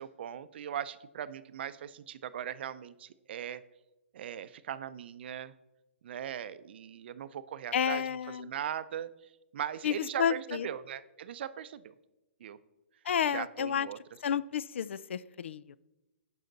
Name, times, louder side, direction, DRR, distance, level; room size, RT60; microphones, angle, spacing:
voice 1, 0.0-3.6 4.1-5.5 6.0-8.0 8.4-9.1 9.5-11.9 12.4-12.6 13.3-14.0, right 9 dB, 55° right, 14 dB, 0.5 m, -39 dB
voice 2, 7.7-8.5 9.8-10.7 13.1-13.9 14.2-15.8, left 8 dB, 70° left, 20 dB, 0.4 m, -31 dB
16.0 x 5.6 x 4.0 m, 0.99 s
hypercardioid pair, 150°, 7 cm